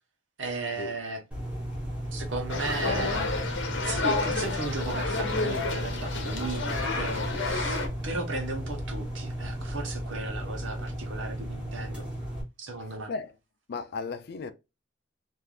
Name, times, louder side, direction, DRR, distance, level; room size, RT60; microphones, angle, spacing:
voice 1, 0.4-1.2 2.1-3.3 3.8-12.1 12.6-13.1, right 3 dB, 85° right, 1.0 m, -35 dB
sound 1, 1.3-12.4, equal, 5° right, 1.3 m, -35 dB
sound 2, 2.5-7.9, left 3 dB, 80° left, 0.8 m, -30 dB
voice 2, 13.7-14.5, left 4 dB, 55° left, 0.4 m, -35 dB
3.3 x 2.6 x 2.4 m
head